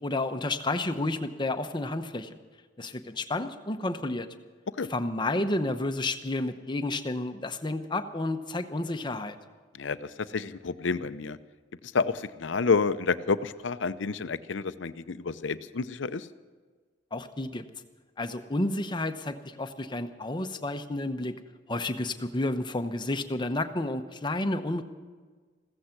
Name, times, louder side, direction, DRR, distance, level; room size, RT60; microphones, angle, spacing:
voice 1, 0.0-2.3 2.8-4.3 4.9-9.4 17.1-17.6 18.2-21.3 21.7-24.8, left 2 dB, 25° left, 8 dB, 0.9 m, -31 dB
voice 2, 9.7-11.4 11.9-16.3, left 4 dB, 85° left, 13 dB, 0.7 m, -29 dB
15.5 x 14.5 x 5.9 m, 1.4 s
head